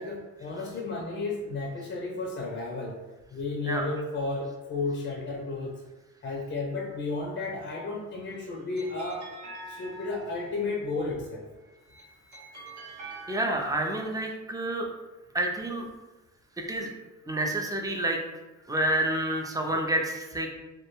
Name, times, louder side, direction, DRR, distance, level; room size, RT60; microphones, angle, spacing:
voice 1, 0.0-3.0 3.3-5.8 6.2-9.2 9.7-11.5, left 3 dB, 40° left, -2 dB, 0.5 m, -33 dB
sound 1, 8.1-10.7 11.7-14.1, right 2 dB, 75° right, 0.9 m, -45 dB
voice 2, 13.3-14.9 15.3-15.9 16.7-16.9 17.3-18.2 18.6-20.5, right 1 dB, 10° right, 1 dB, 0.4 m, -28 dB
2.2 x 2.1 x 2.9 m, 1.1 s
cardioid pair, 90°, 30 cm